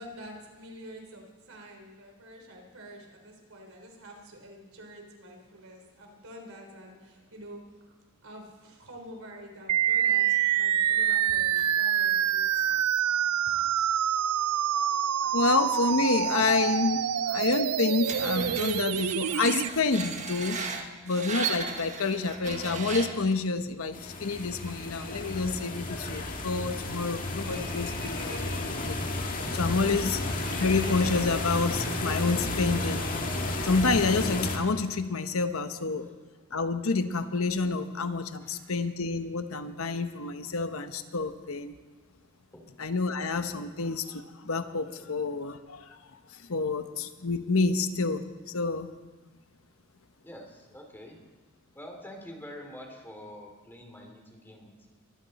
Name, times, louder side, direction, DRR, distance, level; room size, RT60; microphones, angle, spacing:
voice 1, 0.0-7.9 8.2-12.8 13.5-13.7, equal, 70° right, 2 dB, 3.8 m, -47 dB
sound 1, 9.7-19.7, right 10 dB, 85° right, 0.4 m, -26 dB
voice 2, 15.2-20.6 21.0-29.0 29.5-30.2 30.6-33.0 33.6-36.1 36.5-41.7 42.8-46.0 46.3-48.9, left 3 dB, 70° left, 9 dB, 1.0 m, -28 dB
Screech, 18.0-23.3, right 5 dB, 35° right, 1.5 m, -36 dB
sound 2, 23.9-34.6, left 2 dB, 40° left, 1.9 m, -32 dB
voice 3, 38.4-38.7 42.5-42.8 45.0-45.1 50.2-51.2 51.7-54.9, left 1 dB, 10° left, 2 dB, 2.7 m, -46 dB
23.5 x 14.5 x 4.2 m, 1.3 s
head